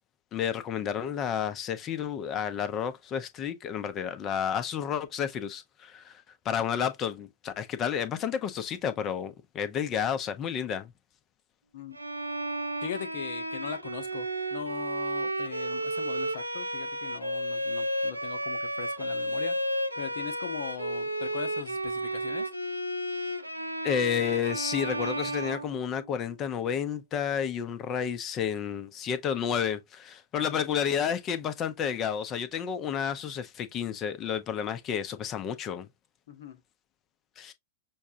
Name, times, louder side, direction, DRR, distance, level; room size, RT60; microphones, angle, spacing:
voice 1, 0.3-10.9 23.8-35.9 37.4-37.5, left 8 dB, 30° left, 0.7 m, -31 dB
Bowed string instrument, 11.9-26.2, right 1 dB, 85° right, 0.5 m, -33 dB
voice 2, 12.8-19.6 20.0-22.5 30.4-30.6 36.3-36.6, left 7 dB, 55° left, 0.9 m, -40 dB
6.3 x 2.3 x 2.7 m
figure-of-eight pair, 95°, 0 cm